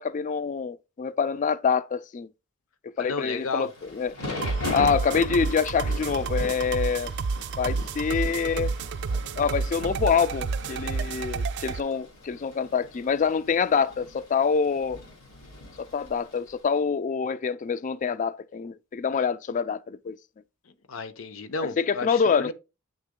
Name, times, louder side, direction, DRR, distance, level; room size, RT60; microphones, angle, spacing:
voice 1, 0.0-2.3 2.8-4.2 4.7-7.1 7.6-8.7 9.4-15.0 15.8-20.2 21.8-22.5, left 6 dB, 35° left, 0.3 m, -26 dB
voice 2, 3.0-3.7 20.7-22.5, left 4 dB, 70° left, 0.7 m, -33 dB
Thunder / Rain, 3.5-16.5, left 2 dB, 85° left, 2.9 m, -39 dB
sound 1, 4.4-11.8, right 4 dB, 55° right, 0.4 m, -30 dB
9.0 x 3.5 x 3.7 m
head